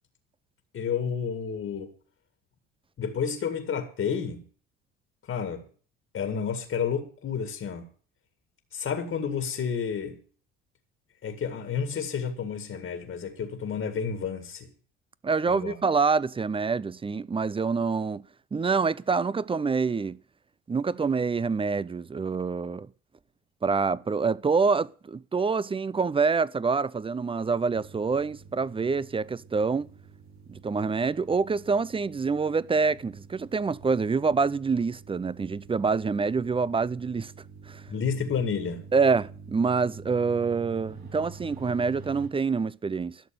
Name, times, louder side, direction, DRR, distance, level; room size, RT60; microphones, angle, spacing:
voice 1, 0.7-1.9 3.0-4.4 5.3-5.6 6.1-7.9 8.7-10.2 11.2-14.7 15.5-15.8 37.9-38.8, left 6 dB, 45° left, 1.9 m, -30 dB
voice 2, 15.2-18.2 18.5-20.2 20.7-22.9 23.6-29.9 30.5-37.3 37.7-37.8 38.9-43.2, right 4 dB, 20° right, 0.5 m, -26 dB
sound 1, 27.7-42.3, right 5 dB, 65° right, 6.7 m, -48 dB
12.0 x 6.7 x 9.0 m
hypercardioid pair, 65°, 30 cm